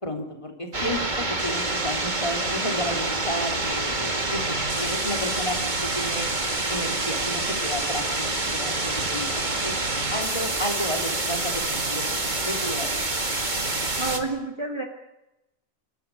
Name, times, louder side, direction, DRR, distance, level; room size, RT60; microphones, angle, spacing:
voice 1, 0.0-9.7 10.1-13.0, equal, 25° left, 2 dB, 3.6 m, -32 dB
sound 1, 0.7-14.2, right 2 dB, 35° right, 2.3 m, -27 dB
sound 2, 3.5-14.3, right 2 dB, 60° right, 5.5 m, -42 dB
voice 2, 14.0-14.8, right 3 dB, 20° right, 3 dB, 2.2 m, -29 dB
26.5 x 13.5 x 9.9 m, 0.92 s
omnidirectional pair, 1.3 m